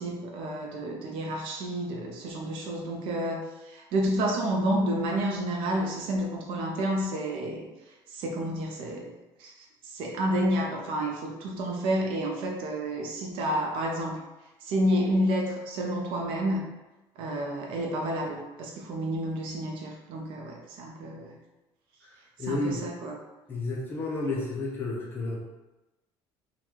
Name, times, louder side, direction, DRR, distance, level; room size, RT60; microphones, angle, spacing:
voice 1, 0.0-7.7 8.1-9.1 9.4-14.2 14.6-16.7 17.2-21.4 22.5-23.2, right 1 dB, 60° right, 0 dB, 0.6 m, -30 dB
voice 2, 22.0-22.8 23.5-25.4, left 2 dB, 20° left, -4 dB, 0.6 m, -31 dB
3.8 x 2.2 x 3.0 m, 1.0 s
cardioid pair, 175°, 10 cm